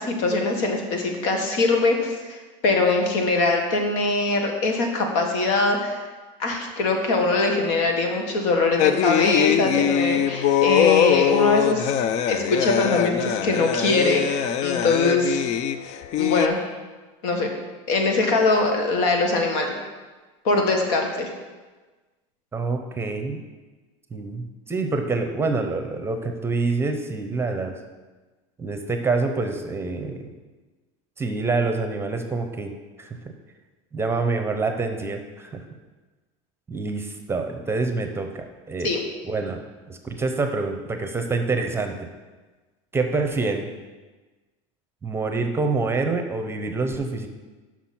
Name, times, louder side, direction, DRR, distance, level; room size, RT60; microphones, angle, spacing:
voice 1, 0.0-6.0 6.4-12.0 12.3-15.4 16.2-16.6 17.2-17.5 17.9-19.7 20.4-21.3 38.8-39.0, left 3 dB, 75° left, 3 dB, 1.5 m, -22 dB
sound 1, 8.8-16.5, left 10 dB, 45° left, 0.4 m, -22 dB
voice 2, 22.5-23.4 24.1-27.8 28.6-30.3 31.2-32.7 33.0-33.2 33.9-35.6 36.7-39.0 39.2-39.6 39.9-42.1 42.9-43.7 45.0-47.3, right 3 dB, 15° right, 6 dB, 0.7 m, -26 dB
6.0 x 6.0 x 5.8 m, 1.3 s
supercardioid pair, 125°, 16 cm